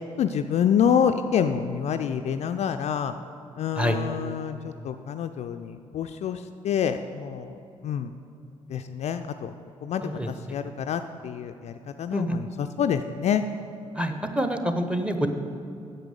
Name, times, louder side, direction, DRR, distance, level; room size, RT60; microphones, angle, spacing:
voice 1, 0.2-3.1 3.6-4.6 4.8-7.6 7.8-8.1 8.7-9.5 9.8-13.4, left 8 dB, 45° left, 8 dB, 0.4 m, -27 dB
voice 2, 10.0-10.5 12.1-12.4 13.9-15.3, equal, 5° right, 7 dB, 0.9 m, -27 dB
9.5 x 6.8 x 6.7 m, 2.6 s
figure-of-eight pair, 40°, 16 cm